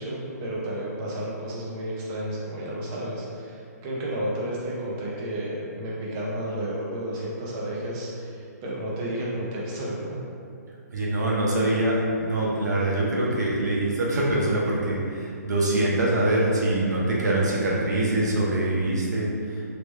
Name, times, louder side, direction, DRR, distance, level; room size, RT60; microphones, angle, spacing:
voice 1, 0.0-10.2, right 1 dB, 15° right, -5 dB, 0.4 m, -32 dB
voice 2, 10.9-19.6, right 1 dB, 85° right, -4 dB, 0.8 m, -24 dB
3.1 x 2.1 x 3.3 m, 2.4 s
hypercardioid pair, 170°, 9 cm